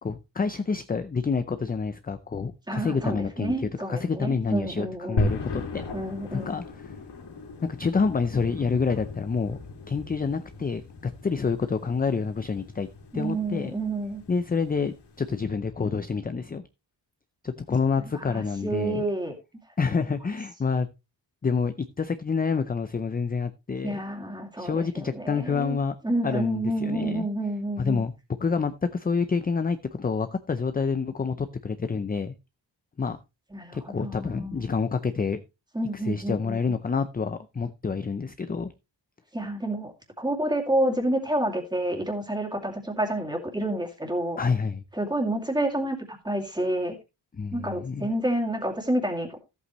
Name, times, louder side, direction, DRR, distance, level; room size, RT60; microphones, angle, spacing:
voice 1, 0.0-5.8 6.3-6.6 7.6-9.6 9.9-12.9 13.1-13.7 14.3-16.6 17.4-19.0 19.8-20.9 21.4-24.0 24.6-26.0 26.2-27.3 27.8-28.1 28.4-32.3 33.0-33.2 33.7-35.4 36.1-38.7 44.4-44.8 47.4-48.1, left 5 dB, 20° left, 0.5 m, -28 dB
voice 2, 2.7-5.3 5.9-6.6 13.1-14.2 18.0-19.3 23.8-25.8 26.0-28.0 33.5-34.7 35.7-36.8 39.3-39.9 40.2-44.4 44.9-47.0 47.5-49.4, right 1 dB, 10° right, 2.4 m, -29 dB
sound 1, 5.2-15.4, left 3 dB, 70° left, 2.6 m, -36 dB
14.0 x 8.2 x 3.1 m
wide cardioid pair, 170°, 42 cm